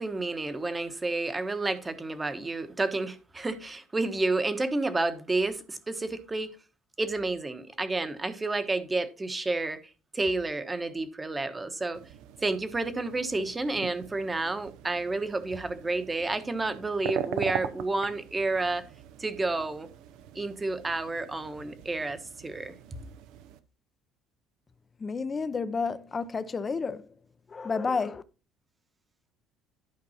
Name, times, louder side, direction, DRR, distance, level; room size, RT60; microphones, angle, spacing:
voice 1, 0.0-6.5 7.0-9.8 10.1-12.0 12.4-18.8 19.2-19.9 20.3-22.7, right 2 dB, 15° right, 1.1 m, -30 dB
sound 1, 11.9-23.6, right 10 dB, 80° right, 0.9 m, -41 dB
voice 2, 25.0-27.1 27.5-28.2, left 4 dB, 25° left, 0.7 m, -30 dB
11.5 x 5.2 x 4.3 m
cardioid pair, 135°, 0 cm